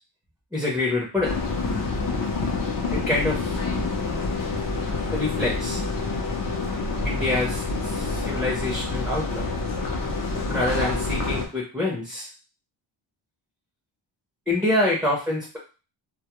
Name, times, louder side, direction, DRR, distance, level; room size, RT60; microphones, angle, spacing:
voice 1, 0.5-1.3 2.9-3.5 5.1-5.8 7.0-9.4 10.5-12.3 14.5-15.6, left 2 dB, ahead, -4 dB, 0.6 m, -26 dB
sound 1, 1.2-11.5, left 3 dB, 40° left, 0.6 m, -27 dB
2.2 x 2.0 x 2.9 m, 0.33 s
wide cardioid pair, 125°, 50 cm